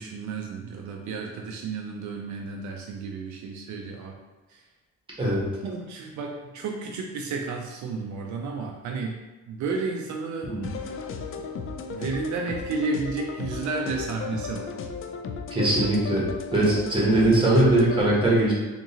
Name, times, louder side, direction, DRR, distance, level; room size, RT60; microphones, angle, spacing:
voice 1, 0.0-4.2 4.5-4.6 5.6-9.2 9.5-10.5 11.9-14.7, right 4 dB, 70° right, 1 dB, 0.5 m, -32 dB
sound 1, 10.6-18.0, left 5 dB, 45° left, 0.4 m, -35 dB
voice 2, 15.5-16.2 16.5-18.5, right 1 dB, 15° right, -5 dB, 1.4 m, -21 dB
3.7 x 2.9 x 2.8 m, 1.2 s
cardioid pair, 90°, 30 cm